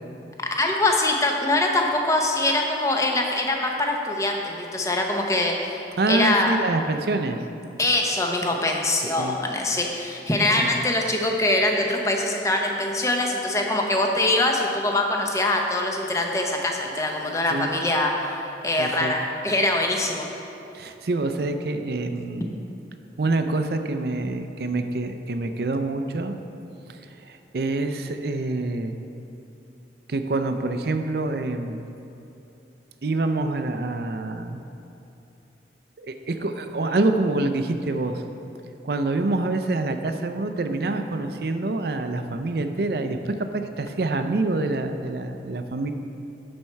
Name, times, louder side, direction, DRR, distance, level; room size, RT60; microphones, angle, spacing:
voice 1, 0.5-5.8 6.1-6.6 7.8-20.3, left 2 dB, 15° left, 1 dB, 0.7 m, -23 dB
voice 2, 6.0-7.4 9.2-9.4 10.6-10.7 17.5-17.7 18.8-19.1 20.7-22.5 23.2-26.4 26.9-29.0 30.1-31.9 33.0-34.6 36.0-38.2 38.8-45.9, right 2 dB, 60° right, 7 dB, 0.5 m, -26 dB
12.0 x 4.3 x 4.5 m, 2.9 s
head